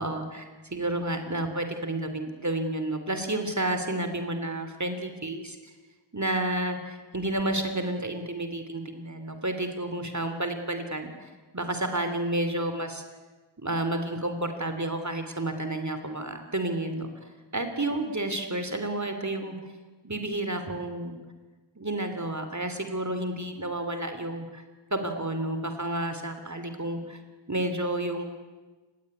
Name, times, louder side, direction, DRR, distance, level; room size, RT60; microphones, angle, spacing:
voice 1, 0.0-5.6 6.1-11.3 11.5-13.0 13.6-17.1 17.5-19.6 20.0-21.2 21.8-24.6 24.9-27.2 27.5-28.2, right 1 dB, 35° right, 7 dB, 3.0 m, -30 dB
29.0 x 17.0 x 9.7 m, 1.3 s
wide cardioid pair, 65°, 48 cm